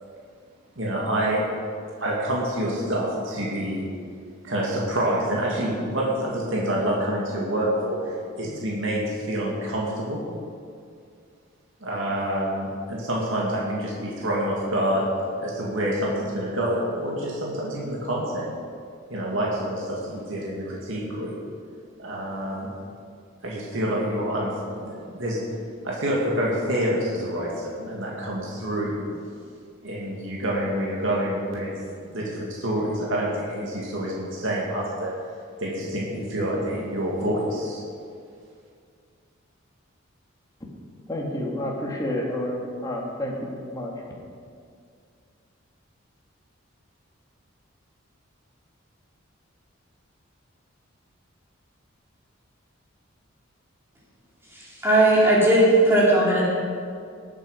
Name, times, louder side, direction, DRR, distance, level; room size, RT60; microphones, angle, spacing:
voice 1, 0.8-1.5 2.0-3.9 4.4-10.2 11.8-15.0 15.4-18.5 19.1-21.4 22.0-22.7 23.4-25.4 25.8-29.1 29.8-35.1 35.6-37.8, right 1 dB, 70° right, -4 dB, 2.5 m, -27 dB
voice 2, 41.1-43.9, left 1 dB, 20° left, -2 dB, 2.2 m, -29 dB
voice 3, 54.5-56.5, right 1 dB, 10° right, -7 dB, 3.6 m, -18 dB
19.0 x 8.7 x 5.2 m, 2.3 s
head